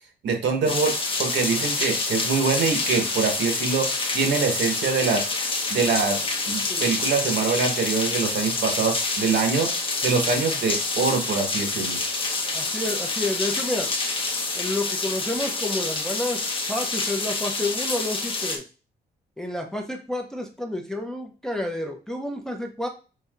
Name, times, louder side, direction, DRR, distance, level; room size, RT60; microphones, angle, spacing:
voice 1, 0.2-5.3 5.7-9.7 10.0-12.0, right 5 dB, 75° right, 4 dB, 1.2 m, -24 dB
sound 1, 0.7-18.6, left 3 dB, 30° left, 0.8 m, -27 dB
voice 2, 12.5-13.9 14.5-18.6 19.4-22.9, left 1 dB, 5° left, 2 dB, 0.6 m, -30 dB
5.4 x 2.7 x 2.4 m, 0.34 s
wide cardioid pair, 145°, 19 cm